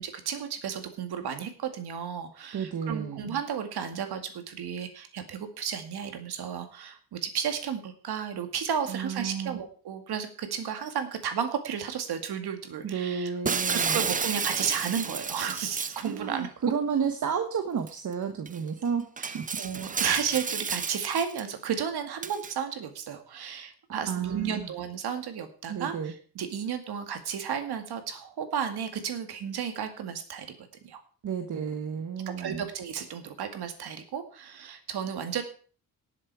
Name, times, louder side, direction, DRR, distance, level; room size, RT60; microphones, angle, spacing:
voice 1, 0.0-13.3 13.7-16.5 19.2-30.5 30.8-31.0 32.3-35.4, right 8 dB, 85° right, 7 dB, 2.3 m, -33 dB
voice 2, 2.5-3.4 8.9-9.6 12.8-14.0 16.0-19.1 19.3-19.4 24.1-24.7 25.7-26.1 31.2-32.7, right 6 dB, 50° right, 6 dB, 1.3 m, -31 dB
Shatter, 13.5-16.1 17.9-18.0 18.5-18.6 19.2-21.4 22.2-22.5, right 5 dB, 20° right, 0.5 m, -31 dB
18.5 x 7.5 x 4.8 m, 0.42 s
wide cardioid pair, 150°, 38 cm